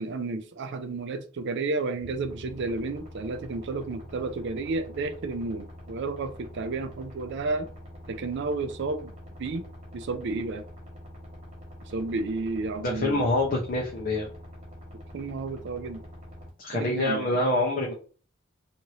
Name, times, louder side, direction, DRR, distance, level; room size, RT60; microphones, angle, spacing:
voice 1, 0.0-7.7 8.1-9.1 9.4-9.6 9.9-10.6 11.9-13.3 15.1-16.0 16.7-17.4, right 3 dB, 55° right, 0.4 m, -32 dB
sound 1, 2.0-16.5, equal, 30° right, 1.2 m, -45 dB
voice 2, 12.8-14.3 16.6-18.0, left 1 dB, 45° left, 0.6 m, -26 dB
2.9 x 2.5 x 3.0 m
head